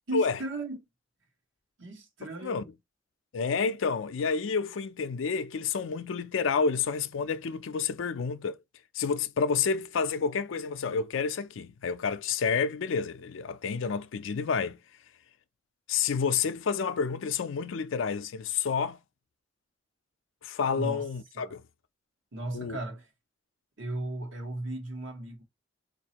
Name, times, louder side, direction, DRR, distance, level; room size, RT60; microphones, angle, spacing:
voice 1, 0.1-0.8 1.8-2.7 20.7-21.1 21.3-21.6 22.3-23.1 23.8-25.4, right 1 dB, 75° right, 1.2 m, -36 dB
voice 2, 3.3-8.6 8.9-14.8 15.9-19.0 20.4-21.6 22.5-22.8, left 5 dB, 80° left, 0.4 m, -29 dB
4.1 x 2.6 x 2.8 m
head